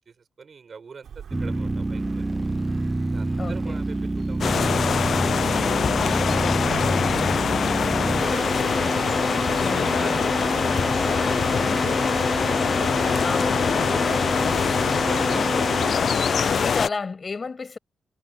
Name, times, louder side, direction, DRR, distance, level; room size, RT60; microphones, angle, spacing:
voice 1, 0.0-2.3 3.0-5.2 5.6-7.5 7.9-9.0 9.5-12.2 12.7-14.6 14.9-16.0, right 5 dB, 50° right, 6.0 m, -42 dB
Bird vocalization bird call bird song, 1.0-12.6, right 8 dB, 75° right, 4.7 m, -46 dB
sound 1, 1.3-16.7, right 2 dB, 20° right, 0.4 m, -28 dB
voice 2, 3.4-3.8 9.6-10.2 13.2-14.5 16.5-17.8, left 4 dB, 40° left, 7.4 m, -32 dB
sound 2, 4.4-16.9, left 7 dB, 60° left, 0.4 m, -23 dB
cardioid pair, 100°, 0 cm